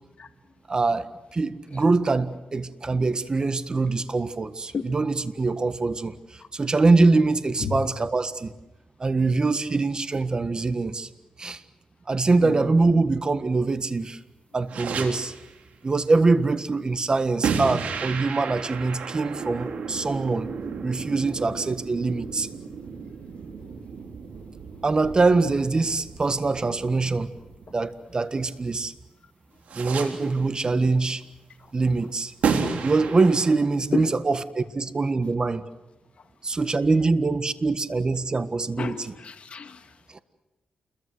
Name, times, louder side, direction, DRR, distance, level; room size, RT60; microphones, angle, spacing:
voice 1, 0.7-8.5 9.0-11.1 11.4-11.6 12.1-14.2 14.5-15.3 15.8-20.5 20.8-22.5 24.8-27.3 27.7-28.9 29.7-31.2 31.7-32.3 32.8-35.7 36.4-39.1 40.1-40.2, right 3 dB, 35° right, 13 dB, 1.6 m, -23 dB
sound 1, 14.7-15.6 17.4-28.3 29.7-30.5 32.4-33.6, right 5 dB, 80° right, 3.6 m, -32 dB
voice 2, 38.8-39.8, left 6 dB, 55° left, 7 dB, 2.3 m, -30 dB
29.0 x 22.0 x 7.9 m, 1.0 s
cardioid pair, 80°, 2 cm